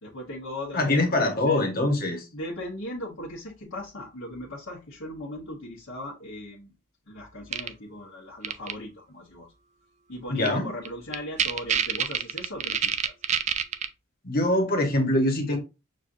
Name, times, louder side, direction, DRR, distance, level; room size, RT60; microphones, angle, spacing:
voice 1, 0.0-1.7 2.3-6.7 7.1-9.5 10.1-13.1, left 1 dB, 90° left, -5 dB, 1.1 m, -38 dB
voice 2, 0.7-2.2 10.3-10.7 14.2-15.6, left 1 dB, 45° left, 3 dB, 1.2 m, -23 dB
sound 1, 7.5-7.7 8.4-8.7 10.5-10.6 10.8-10.9 11.1-13.9, right 8 dB, 35° right, 0.3 m, -25 dB
6.5 x 2.5 x 2.6 m, 0.28 s
head